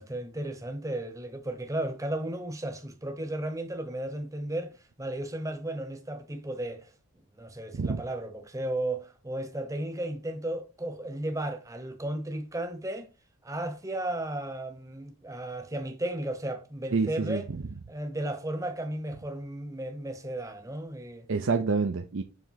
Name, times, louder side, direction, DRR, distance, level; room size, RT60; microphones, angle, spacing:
voice 1, 0.0-6.9 7.4-13.1 13.4-17.5 17.9-21.3, right 1 dB, 15° right, 0.9 m, -34 dB
voice 2, 16.9-17.4 21.3-22.2, right 4 dB, 55° right, 0.5 m, -27 dB
7.3 x 3.4 x 5.7 m
head